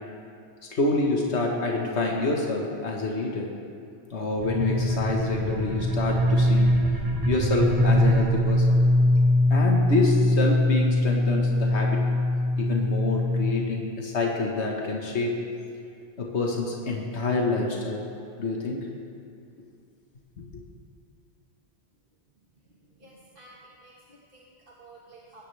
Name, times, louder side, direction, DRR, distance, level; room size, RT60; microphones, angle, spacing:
voice 1, 0.7-3.5 4.1-6.8 7.3-8.8 9.5-12.1 12.6-15.4 16.2-18.1 18.4-18.9 20.4-20.5, left 3 dB, 75° left, -1 dB, 1.8 m, -27 dB
sound 1, 4.4-13.5, left 1 dB, 20° right, 1.2 m, -22 dB
voice 2, 23.0-25.4, right 2 dB, 50° right, -5 dB, 2.0 m, -52 dB
20.5 x 17.0 x 3.4 m, 2.4 s
omnidirectional pair, 1.2 m